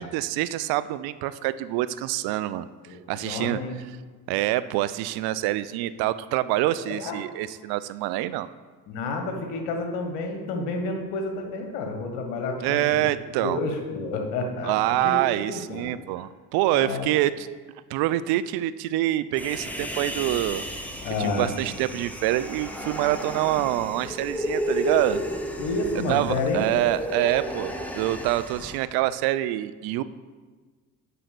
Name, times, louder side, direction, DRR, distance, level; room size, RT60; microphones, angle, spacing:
voice 1, 0.0-2.7 3.1-3.6 4.3-8.5 12.6-13.6 14.6-17.5 17.9-20.7 21.2-25.2 26.1-30.0, right 15 dB, 50° right, 14 dB, 0.5 m, -26 dB
voice 2, 2.9-3.8 6.8-7.2 8.9-12.9 13.4-15.9 16.2-16.3 16.7-17.1 21.0-21.5 25.6-26.7, left 3 dB, 70° left, 4 dB, 1.5 m, -30 dB
Human voice, 19.4-28.8, equal, 5° left, 0.9 m, -33 dB
6.7 x 5.7 x 6.6 m, 1.4 s
figure-of-eight pair, 50°, 49 cm